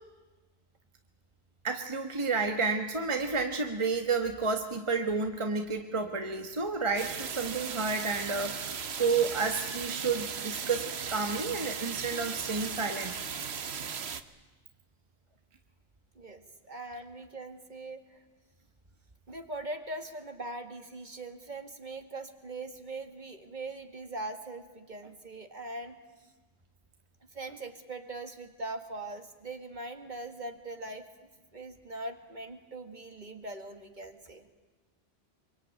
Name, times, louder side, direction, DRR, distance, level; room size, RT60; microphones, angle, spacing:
voice 1, 1.6-13.2, right 4 dB, 30° right, 5 dB, 1.3 m, -31 dB
sound 1, 7.0-14.2, right 6 dB, 85° right, 1.3 m, -37 dB
voice 2, 16.2-18.2 19.3-26.0 27.3-31.1 31.5-34.5, right 2 dB, 45° right, 7 dB, 2.0 m, -41 dB
24.5 x 23.5 x 9.1 m, 1.2 s
omnidirectional pair, 1.1 m